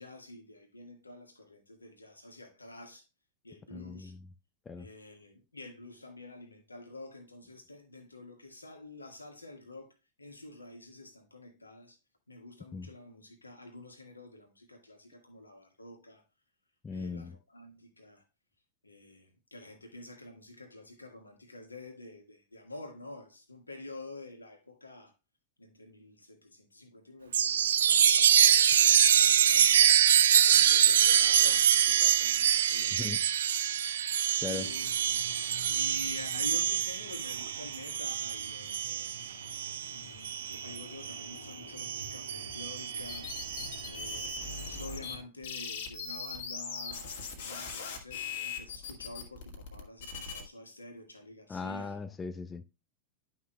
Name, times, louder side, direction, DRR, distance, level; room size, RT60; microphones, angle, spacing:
voice 1, 0.0-3.1 3.4-4.1 4.7-12.0 12.3-16.2 16.9-18.2 18.8-25.1 25.6-30.1 30.5-33.3 34.3-35.2 35.6-39.3 39.9-43.3 43.8-52.0, left 2 dB, 80° left, 1.6 m, -48 dB
voice 2, 3.7-4.2 4.7-4.9 12.7-12.9 16.8-17.4 32.9-33.2 34.4-34.8 51.5-52.6, left 4 dB, 15° left, 0.5 m, -38 dB
Chime, 27.3-41.3 41.8-44.6, right 9 dB, 65° right, 0.4 m, -25 dB
sound 1, 34.4-45.2, left 1 dB, 85° right, 1.4 m, -50 dB
sound 2, 43.0-45.2 45.4-50.4, left 5 dB, 55° left, 1.6 m, -40 dB
11.0 x 5.8 x 2.2 m
figure-of-eight pair, 90°, 0 cm